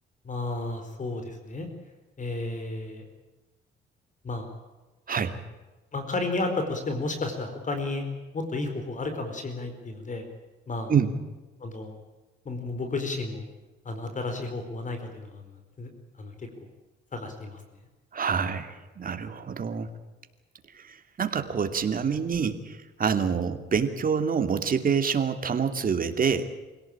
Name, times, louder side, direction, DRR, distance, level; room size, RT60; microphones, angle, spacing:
voice 1, 0.2-1.7 2.2-3.1 4.2-4.5 5.9-8.0 8.3-10.2 10.7-10.9 11.6-12.0 12.4-13.5 13.8-15.9 16.2-16.3 17.1-17.6, left 2 dB, 40° left, 6 dB, 4.5 m, -32 dB
voice 2, 18.1-19.9 20.7-26.5, right 6 dB, 45° right, 8 dB, 2.7 m, -27 dB
26.0 x 17.5 x 8.8 m, 1.2 s
cardioid pair, 90°, 20 cm